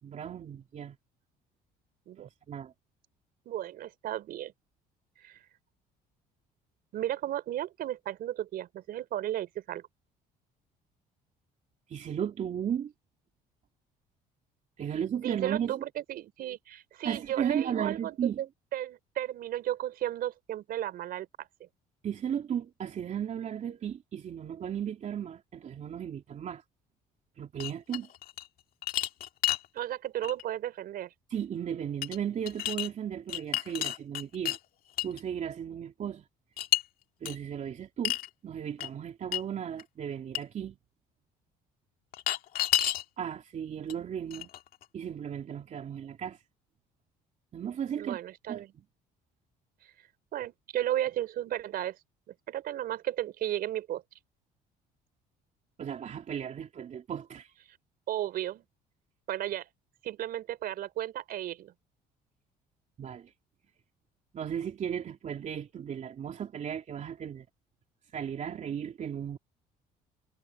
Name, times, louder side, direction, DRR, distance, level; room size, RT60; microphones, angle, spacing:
voice 1, 0.0-1.0 2.2-2.7 11.9-12.9 14.8-15.8 17.0-18.4 22.0-26.6 27.4-28.1 31.3-34.6 35.0-36.2 37.2-38.2 38.4-40.8 43.2-44.5 44.9-46.4 47.5-48.2 48.5-48.6 55.8-57.5 63.0-63.3 64.3-67.5 68.1-69.4, right 8 dB, 45° right, 3.0 m, -35 dB
voice 2, 3.5-4.5 5.2-5.4 6.9-9.9 15.2-18.5 18.7-21.5 29.7-31.1 48.0-48.7 50.3-52.0 52.3-54.0 58.1-58.6 59.3-59.7 60.0-61.7, right 12 dB, 65° right, 4.5 m, -34 dB
sound 1, 27.6-28.5 28.8-29.7 30.2-30.4 32.0-32.2 32.5-32.9 33.3-34.6 35.0-35.2 36.6-36.8 37.3-37.4 38.0-38.3 38.8-38.9 39.3-39.4 39.8-39.9 40.3-40.4 42.1-43.0 43.9-44.0 44.3-44.8, left 13 dB, 65° left, 2.1 m, -30 dB
cardioid pair, 95°, 17 cm